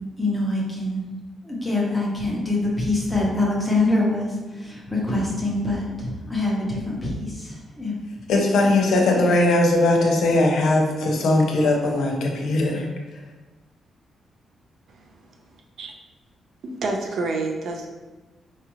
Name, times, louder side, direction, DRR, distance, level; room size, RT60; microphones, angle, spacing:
voice 1, 0.2-1.0 1.4-8.0 8.7-8.9, left 2 dB, 5° left, -5 dB, 0.8 m, -25 dB
voice 2, 8.3-12.9, left 2 dB, 80° left, 0 dB, 0.6 m, -19 dB
voice 3, 16.6-17.9, right 3 dB, 60° right, 2 dB, 0.4 m, -28 dB
4.2 x 2.4 x 3.0 m, 1.2 s
wide cardioid pair, 165°, 0 cm